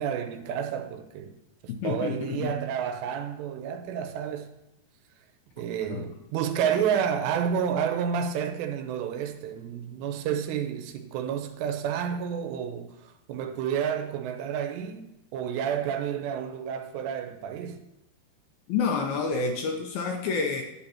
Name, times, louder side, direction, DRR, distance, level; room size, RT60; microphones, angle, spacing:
voice 1, 0.0-1.3 1.6-4.6 5.6-17.8, right 8 dB, 85° right, 2.9 m, -30 dB
voice 2, 1.8-2.6 5.9-6.0 18.7-20.6, left 5 dB, 75° left, 2.3 m, -28 dB
10.5 x 8.2 x 2.9 m
omnidirectional pair, 4.9 m